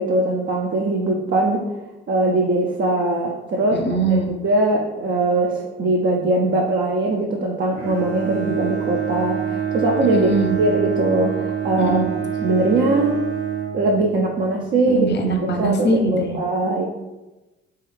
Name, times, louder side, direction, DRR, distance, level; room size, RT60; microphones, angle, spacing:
voice 1, 0.0-1.6 2.1-3.8 4.3-12.0 12.4-13.2 13.7-15.1 15.4-16.8, right 2 dB, 40° right, 0 dB, 0.5 m, -21 dB
voice 2, 3.7-4.3 10.1-10.6 11.8-12.1 14.9-16.3, right 2 dB, 35° left, 3 dB, 0.7 m, -22 dB
Bowed string instrument, 7.7-14.4, right 8 dB, 85° right, 0.8 m, -26 dB
3.0 x 2.3 x 3.2 m, 1.1 s
supercardioid pair, 70°, 30 cm